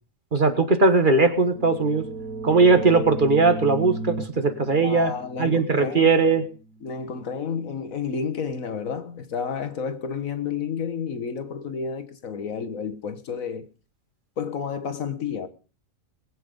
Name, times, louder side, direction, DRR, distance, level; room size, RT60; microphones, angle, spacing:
voice 1, 0.3-2.0 2.4-5.1 5.4-6.5, right 3 dB, 35° right, 1.4 m, -19 dB
sound 1, 1.3-6.8, right 3 dB, 80° right, 1.9 m, -36 dB
voice 2, 4.8-6.2 6.8-13.7 14.4-15.5, left 6 dB, 70° left, 1.7 m, -31 dB
20.5 x 8.0 x 5.2 m
omnidirectional pair, 1.5 m